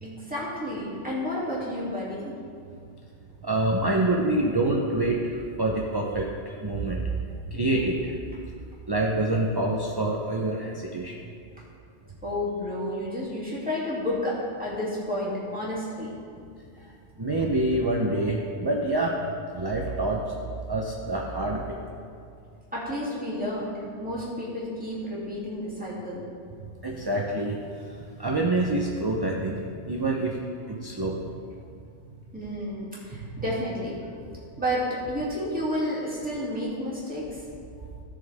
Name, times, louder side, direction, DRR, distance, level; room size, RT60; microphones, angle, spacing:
voice 1, 0.0-2.3 12.2-16.1 22.7-26.2 32.3-34.0 34.6-37.4, left 1 dB, 5° right, -8 dB, 2.7 m, -31 dB
voice 2, 3.4-7.1 7.5-8.1 8.9-11.2 17.2-19.2 19.5-20.3 20.7-21.8 26.8-27.9 28.2-30.4 30.7-31.2 33.3-33.4, right 2 dB, 25° right, -1 dB, 0.7 m, -26 dB
16.5 x 7.0 x 3.6 m, 2.4 s
omnidirectional pair, 1.2 m